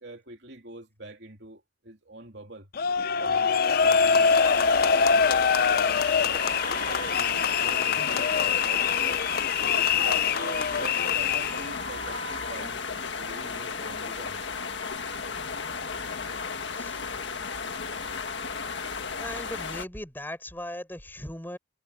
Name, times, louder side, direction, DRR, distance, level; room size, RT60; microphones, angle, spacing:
voice 1, 0.0-2.7 3.1-6.5 6.9-9.2 9.8-12.8 13.2-14.4, right 2 dB, 60° right, 3.0 m, -44 dB
sound 1, 2.8-11.7, left 6 dB, 50° left, 0.5 m, -24 dB
sound 2, 3.7-19.9, left 5 dB, 70° left, 1.8 m, -34 dB
Wind instrument woodwind instrument, 6.4-12.6, right 1 dB, 85° right, 4.4 m, -39 dB
voice 2, 19.2-21.6, left 1 dB, 10° left, 6.1 m, -38 dB
head